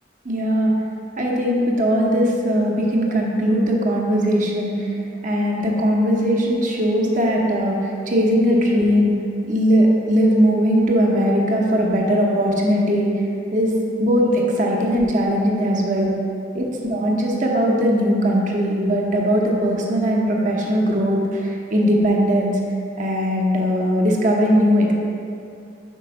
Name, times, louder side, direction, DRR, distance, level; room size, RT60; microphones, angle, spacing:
voice 1, 0.2-0.7 1.2-9.1 9.4-13.1 13.5-13.7 14.0-16.1 16.5-22.6 23.0-24.9, equal, 45° right, -1 dB, 0.8 m, -19 dB
5.1 x 4.5 x 5.7 m, 2.4 s
head